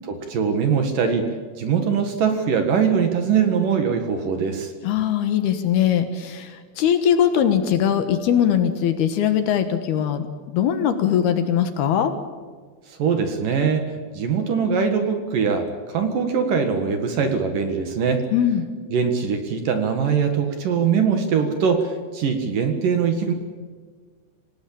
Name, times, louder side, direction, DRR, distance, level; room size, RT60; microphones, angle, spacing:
voice 1, 0.1-4.7 12.9-13.8 14.1-18.2 18.9-23.3, right 6 dB, 55° right, 6 dB, 2.9 m, -22 dB
voice 2, 4.8-10.3 10.5-12.1 18.3-18.7, left 9 dB, 65° left, 8 dB, 3.1 m, -21 dB
26.0 x 19.0 x 8.8 m, 1.5 s
omnidirectional pair, 5.3 m